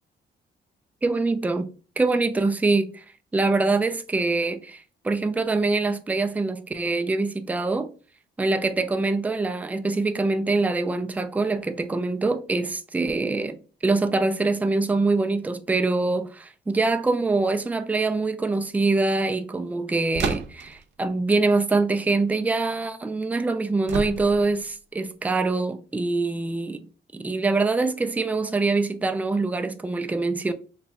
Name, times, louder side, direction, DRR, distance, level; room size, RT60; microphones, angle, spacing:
voice 1, 1.0-1.7 2.0-3.0 3.3-7.9 8.4-13.6 13.8-26.9 27.1-30.5, right 3 dB, 10° right, 0.4 m, -24 dB
sound 1, 20.1-20.8 23.9-24.6, right 5 dB, 65° right, 0.7 m, -30 dB
3.0 x 2.3 x 4.0 m
cardioid pair, 90°, 20 cm